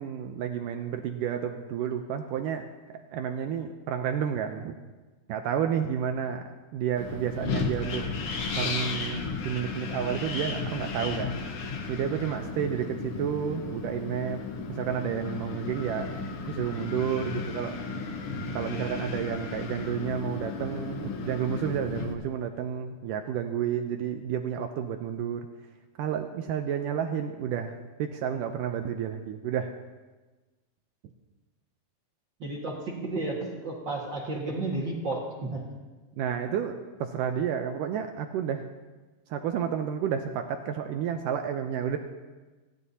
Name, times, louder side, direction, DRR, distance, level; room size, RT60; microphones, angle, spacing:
voice 1, 0.0-2.7 3.1-4.8 5.3-8.1 8.6-11.4 11.9-14.4 14.7-16.2 16.5-17.8 18.5-25.5 26.0-29.7 36.2-38.7 39.3-42.0, right 8 dB, 80° right, 6 dB, 2.0 m, -31 dB
Wind, 7.0-22.1, left 4 dB, 75° left, 1.3 m, -34 dB
voice 2, 32.4-35.6, right 2 dB, 40° right, -3 dB, 1.8 m, -32 dB
28.5 x 11.0 x 2.8 m, 1.2 s
omnidirectional pair, 4.3 m